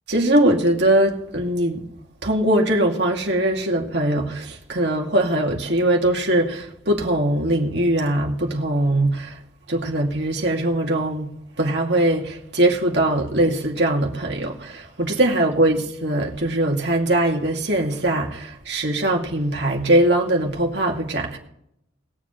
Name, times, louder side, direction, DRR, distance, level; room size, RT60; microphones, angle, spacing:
voice 1, 0.1-1.8 2.2-9.4 9.7-11.3 11.6-21.4, right 1 dB, 60° right, 2.3 m, -21 dB
21.0 x 7.4 x 3.2 m
head